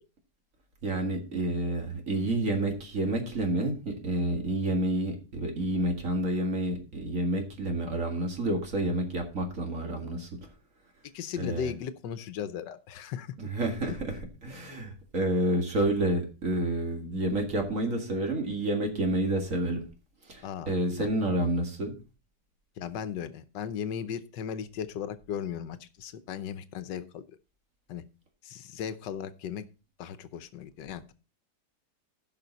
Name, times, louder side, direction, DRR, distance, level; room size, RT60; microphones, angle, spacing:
voice 1, 0.8-10.5 11.4-11.7 13.4-14.1 14.4-19.8 20.2-22.0, right 1 dB, 45° right, 3 dB, 2.3 m, -29 dB
voice 2, 11.0-13.3 13.8-14.2 20.4-21.1 22.8-27.2 27.9-28.0 28.4-29.6 30.0-31.1, left 8 dB, 80° left, 13 dB, 1.4 m, -37 dB
15.5 x 5.8 x 4.0 m, 0.33 s
omnidirectional pair, 1.9 m